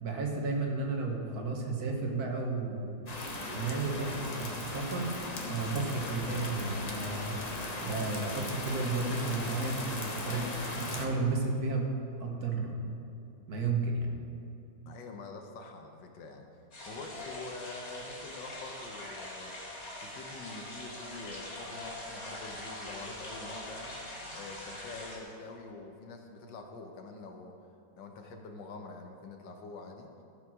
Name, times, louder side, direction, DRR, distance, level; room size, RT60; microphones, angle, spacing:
voice 1, 0.0-3.0 3.5-5.1 5.5-7.4 7.8-10.4 10.8-11.9 12.2-12.9 13.5-14.1, right 3 dB, 55° right, 1 dB, 1.7 m, -32 dB
sound 1, 3.1-11.1, left 2 dB, 30° left, 0.9 m, -38 dB
voice 2, 10.2-10.7 14.9-16.5 16.9-19.7 20.0-24.0 24.3-27.5 28.0-30.1, left 3 dB, 80° left, 4 dB, 1.7 m, -45 dB
sound 2, 16.7-25.2, left 1 dB, 50° left, 3.1 m, -43 dB
14.0 x 5.9 x 6.2 m, 2.7 s
omnidirectional pair, 2.0 m